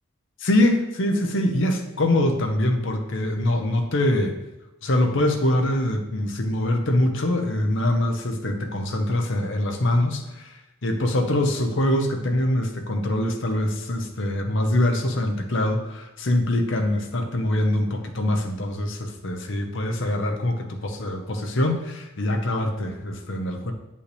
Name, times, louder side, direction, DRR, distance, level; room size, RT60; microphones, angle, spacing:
voice 1, 0.4-4.4 4.8-10.5 10.8-23.7, left 1 dB, 55° left, 4 dB, 0.9 m, -24 dB
8.3 x 5.5 x 3.3 m, 1.0 s
head